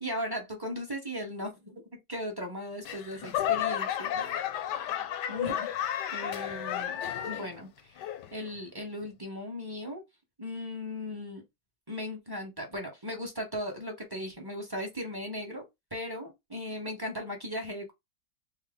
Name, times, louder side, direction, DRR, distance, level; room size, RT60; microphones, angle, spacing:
voice 1, 0.0-1.8 2.1-4.4 5.3-5.7 6.1-8.0 8.3-10.0 10.4-11.4 11.9-15.6 15.9-17.9, left 1 dB, 20° right, 0.6 m, -37 dB
Laughter / Clapping / Crowd, 2.8-7.6 8.0-8.5 9.1-9.2, left 10 dB, 85° left, 1.2 m, -32 dB
3.5 x 2.1 x 3.5 m
omnidirectional pair, 1.8 m